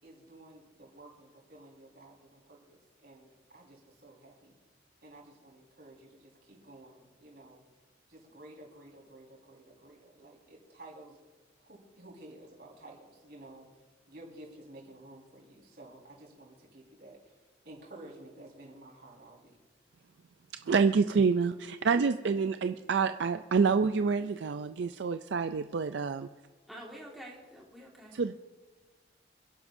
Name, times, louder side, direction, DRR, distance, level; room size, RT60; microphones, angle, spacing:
voice 1, 0.0-4.6 5.0-7.6 8.1-11.2 11.6-13.7 14.1-17.4 17.6-19.6, right 1 dB, 55° right, -3 dB, 4.6 m, -52 dB
voice 2, 20.6-26.3 28.1-28.3, right 5 dB, 70° right, 9 dB, 0.4 m, -27 dB
voice 3, 26.7-28.1, equal, ahead, -4 dB, 1.8 m, -47 dB
28.5 x 11.0 x 2.7 m, 1.3 s
head